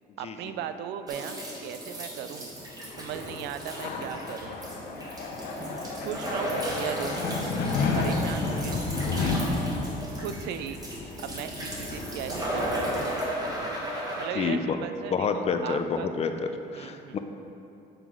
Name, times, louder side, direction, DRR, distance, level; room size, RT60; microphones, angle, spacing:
voice 1, 0.2-2.5 3.0-4.6 6.0-7.2 7.9-9.4 10.2-10.8 11.2-12.8 14.2-16.1 16.7-17.2, right 9 dB, 85° right, 10 dB, 0.4 m, -37 dB
sound 1, 1.1-14.3, right 1 dB, 20° right, 1.4 m, -35 dB
sound 2, 2.6-13.9, left 3 dB, 85° left, 0.8 m, -32 dB
voice 2, 14.3-14.8 15.1-17.2, left 5 dB, 40° left, 7 dB, 0.5 m, -28 dB
8.0 x 3.8 x 4.6 m, 2.8 s
cardioid pair, 110°, 17 cm